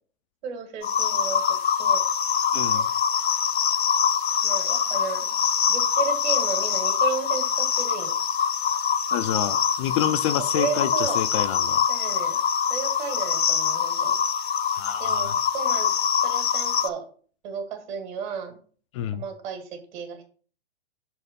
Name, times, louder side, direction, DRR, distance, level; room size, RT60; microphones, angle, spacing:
voice 1, 0.4-2.0 2.7-2.8 4.4-5.3 5.7-8.1 10.5-11.2 11.9-12.4 12.7-14.2 15.0-15.9 16.2-17.0 17.4-18.6 19.1-20.2, right 6 dB, 45° right, 5 dB, 2.0 m, -33 dB
sound 1, 0.8-16.9, left 7 dB, 75° left, 0.8 m, -24 dB
voice 2, 2.5-2.9 9.1-11.8 14.7-15.3 18.9-19.2, left 11 dB, 30° left, 11 dB, 0.4 m, -28 dB
6.4 x 4.3 x 5.3 m, 0.43 s
hypercardioid pair, 125°, 32 cm